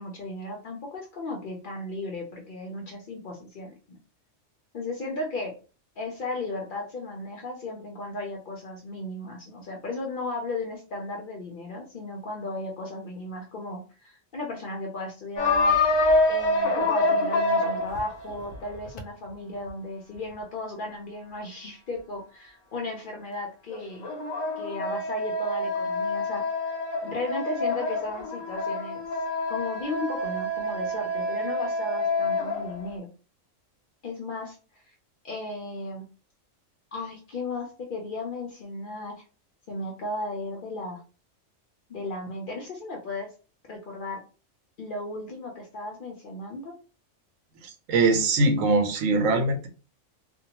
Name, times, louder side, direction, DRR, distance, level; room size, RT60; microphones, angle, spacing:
voice 1, 0.0-4.0 4.7-5.5 6.0-15.8 16.3-24.1 24.6-26.8 27.0-29.0 29.5-33.1 34.0-34.6 35.2-36.0 36.9-39.2 39.7-41.0 41.9-43.3 43.7-44.2 44.8-46.7, left 2 dB, 55° left, 1 dB, 0.6 m, -35 dB
sound 1, 15.4-19.0 23.7-32.9, left 2 dB, 80° left, 1.0 m, -26 dB
voice 2, 47.6-49.7, right 3 dB, 85° right, 6 dB, 1.0 m, -22 dB
2.6 x 2.1 x 2.8 m, 0.35 s
omnidirectional pair, 1.3 m